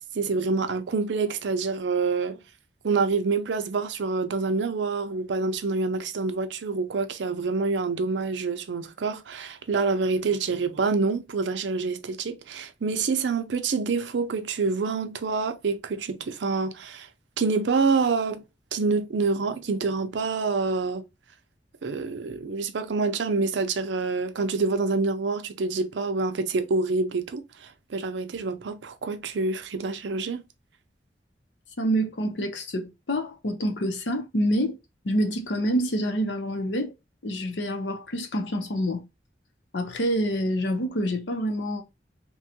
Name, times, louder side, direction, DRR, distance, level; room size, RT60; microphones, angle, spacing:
voice 1, 0.1-2.4 2.8-17.1 17.4-18.4 18.7-21.0 21.8-30.4, right 4 dB, 80° right, 0.5 m, -27 dB
voice 2, 31.8-34.8 35.0-36.9 37.2-39.0 39.7-41.8, equal, 75° left, 0.7 m, -27 dB
3.0 x 2.3 x 2.8 m
head